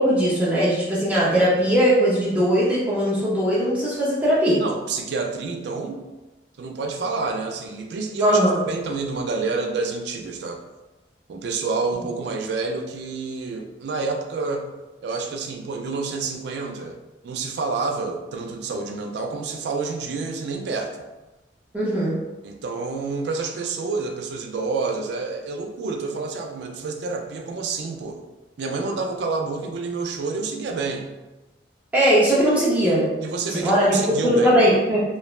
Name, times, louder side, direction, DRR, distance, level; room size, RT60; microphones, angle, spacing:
voice 1, 0.0-4.6 8.2-8.6 21.7-22.2 31.9-33.2 33.4-35.0, equal, 10° right, -8 dB, 0.5 m, -19 dB
voice 2, 4.6-6.0 6.6-8.4 8.7-10.6 11.3-14.7 15.0-17.0 17.2-21.0 22.4-28.2 28.6-31.1 32.5-32.6 33.2-34.7, right 4 dB, 70° right, 3 dB, 0.3 m, -28 dB
3.0 x 2.0 x 2.3 m, 1.1 s
head